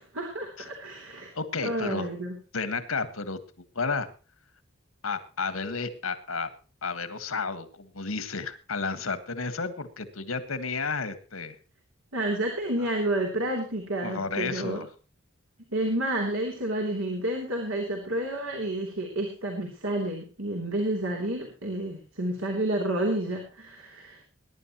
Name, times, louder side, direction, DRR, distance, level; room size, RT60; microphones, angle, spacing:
voice 1, 0.0-1.3 1.6-2.4 12.1-14.8 15.7-24.2, right 1 dB, 85° right, 1 dB, 3.2 m, -30 dB
voice 2, 1.3-2.1 2.5-3.4 3.7-4.1 5.0-6.5 6.8-11.5 12.8-13.0 14.0-14.9, left 4 dB, 90° left, 11 dB, 1.7 m, -32 dB
21.0 x 11.0 x 3.0 m, 0.36 s
head